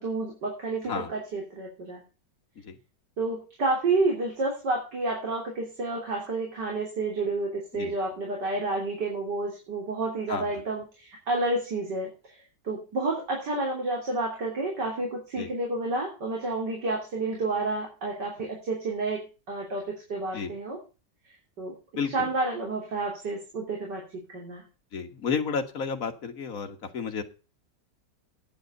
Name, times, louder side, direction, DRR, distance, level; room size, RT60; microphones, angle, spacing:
voice 1, 0.0-2.0 3.2-12.4 12.6-20.8 21.6-21.7 22.1-24.0 24.3-24.6, right 2 dB, 90° right, -1 dB, 4.0 m, -30 dB
voice 2, 21.9-22.3 24.9-27.2, left 6 dB, 55° left, 5 dB, 1.9 m, -32 dB
10.0 x 8.0 x 7.9 m, 0.33 s
omnidirectional pair, 1.8 m